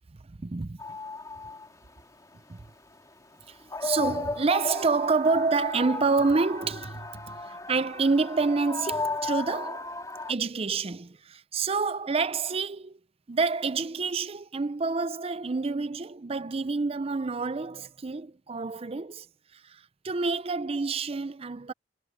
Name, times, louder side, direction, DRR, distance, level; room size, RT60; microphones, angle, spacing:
voice 1, 0.2-0.8 2.5-2.7 3.5-9.9 10.3-13.0 13.3-19.3 19.5-21.7, right 4 dB, 35° right, 0.5 m, -28 dB
sound 1, 0.8-2.3 2.6-3.2 3.6-10.3, left 3 dB, 20° left, 2.7 m, -35 dB
head